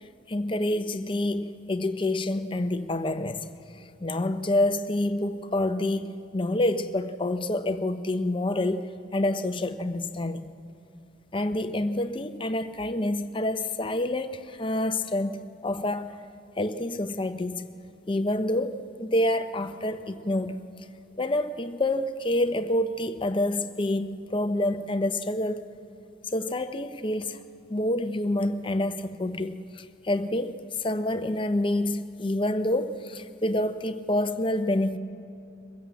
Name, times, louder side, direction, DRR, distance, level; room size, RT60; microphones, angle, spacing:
voice 1, 0.3-3.5 4.0-10.5 11.3-16.2 16.6-17.7 18.1-20.6 21.2-25.7 26.3-27.4 27.7-35.0, left 1 dB, 25° left, 0.7 m, -27 dB
23.0 x 15.0 x 8.3 m
head